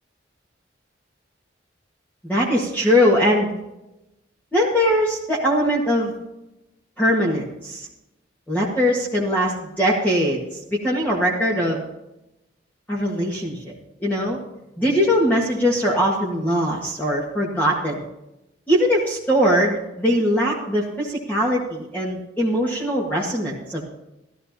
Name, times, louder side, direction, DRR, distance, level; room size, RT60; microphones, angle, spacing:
voice 1, 2.2-3.5 4.5-6.1 7.0-7.9 8.5-10.4 10.7-11.8 12.9-13.8 14.0-14.4 14.8-18.0 18.7-23.8, equal, 10° left, -4 dB, 1.7 m, -21 dB
15.0 x 13.5 x 2.9 m, 0.91 s
head